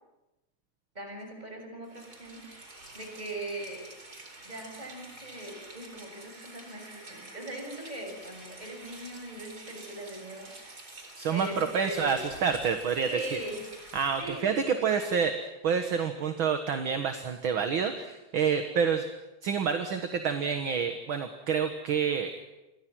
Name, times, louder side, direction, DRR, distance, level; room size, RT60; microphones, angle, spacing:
voice 1, 0.9-3.9 4.4-10.9 11.3-12.3 13.1-13.6 14.2-15.1, right 1 dB, 15° right, 3 dB, 6.5 m, -40 dB
Rain, 1.8-14.4, right 2 dB, 30° right, 4.6 m, -48 dB
voice 2, 11.2-13.4 13.9-15.3 15.6-19.1 19.4-22.4, right 6 dB, 50° right, 7 dB, 1.9 m, -28 dB
29.5 x 23.5 x 6.3 m, 0.97 s
omnidirectional pair, 3.3 m